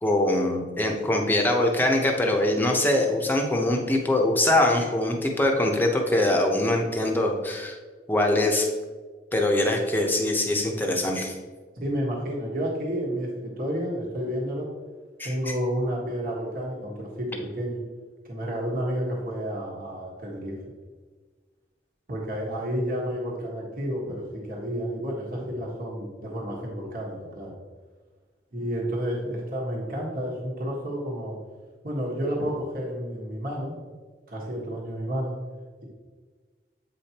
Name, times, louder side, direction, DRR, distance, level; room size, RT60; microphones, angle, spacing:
voice 1, 0.0-7.8 8.1-8.7 9.3-11.3 15.2-15.3, left 1 dB, 10° left, 1 dB, 0.8 m, -23 dB
voice 2, 11.8-14.7 15.2-17.8 18.2-20.5 22.1-27.5 28.5-31.4 31.8-33.7 34.3-35.3, equal, 50° right, -3 dB, 1.4 m, -30 dB
8.2 x 5.0 x 2.9 m, 1.4 s
head